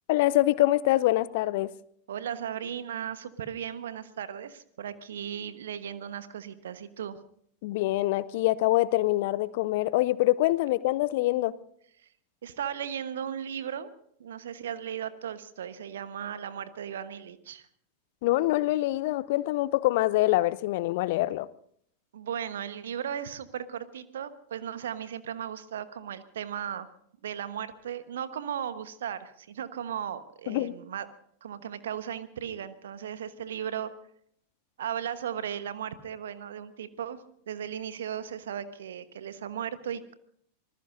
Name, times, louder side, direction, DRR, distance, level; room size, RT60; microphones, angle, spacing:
voice 1, 0.1-1.7 7.6-11.5 18.2-21.5 30.5-30.7, left 17 dB, 50° left, 20 dB, 0.6 m, -25 dB
voice 2, 2.1-7.2 12.4-13.9 14.2-17.7 22.1-26.9 27.2-31.1 31.4-33.9 34.8-40.1, right 9 dB, 60° right, 13 dB, 1.2 m, -36 dB
26.0 x 19.5 x 2.6 m, 0.66 s
figure-of-eight pair, 90°, 0 cm